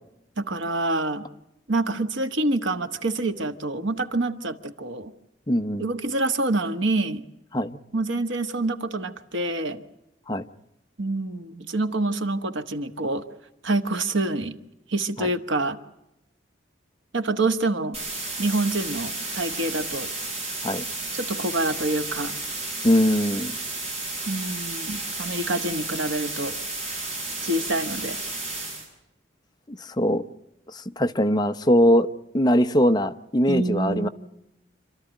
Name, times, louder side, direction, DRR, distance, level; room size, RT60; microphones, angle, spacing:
voice 1, 0.4-1.2 1.7-5.1 5.8-7.2 7.9-9.8 11.0-13.2 13.6-14.6 14.9-15.8 17.1-18.0 18.4-20.1 21.1-22.3 24.3-26.6 27.4-28.2 33.5-34.1, right 2 dB, 90° right, 9 dB, 1.4 m, -26 dB
voice 2, 5.5-5.9 7.5-7.8 10.3-10.5 15.2-15.3 20.6-20.8 22.8-23.5 29.7-30.2 30.7-32.1 32.3-34.1, equal, 20° left, 9 dB, 0.7 m, -21 dB
sound 1, 17.9-28.9, right 2 dB, 35° right, 7.8 m, -32 dB
27.0 x 13.0 x 9.1 m, 0.90 s
head